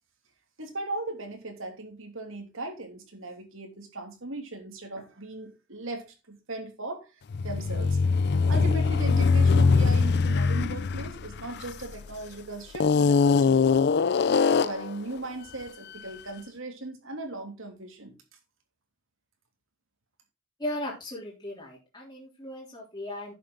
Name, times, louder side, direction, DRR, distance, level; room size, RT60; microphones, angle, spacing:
voice 1, 0.6-7.1 7.4-8.0 8.5-13.9 14.5-18.2, right 2 dB, 75° right, 2.9 m, -38 dB
sound 1, 7.3-12.1 12.7-14.9, left 4 dB, 55° left, 0.4 m, -22 dB
voice 2, 20.6-23.3, left 1 dB, 20° left, 3.3 m, -37 dB
11.0 x 7.3 x 3.8 m
head